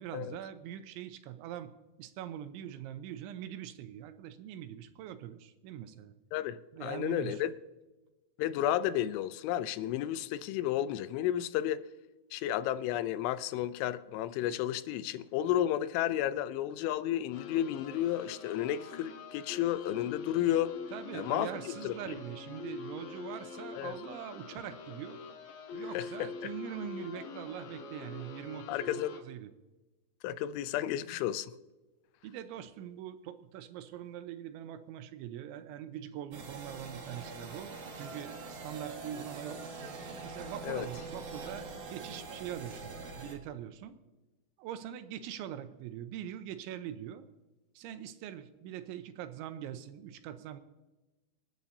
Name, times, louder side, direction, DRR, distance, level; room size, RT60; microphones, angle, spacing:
voice 1, 0.0-1.7 2.0-6.2 6.7-7.4 20.9-25.2 25.7-29.5 32.2-39.6 40.2-44.0 44.6-47.3 47.8-50.6, right 10 dB, 85° right, 3.0 m, -43 dB
voice 2, 6.3-7.5 8.4-11.8 12.3-20.7 21.1-22.2 23.8-23.9 25.9-26.1 28.7-29.2 30.2-31.6 40.6-40.9, left 12 dB, 85° left, 3.1 m, -32 dB
sound 1, 17.3-29.2, left 5 dB, 65° left, 2.4 m, -44 dB
sound 2, 36.3-43.3, right 3 dB, 55° right, 2.4 m, -44 dB
26.5 x 9.2 x 2.7 m
omnidirectional pair, 5.4 m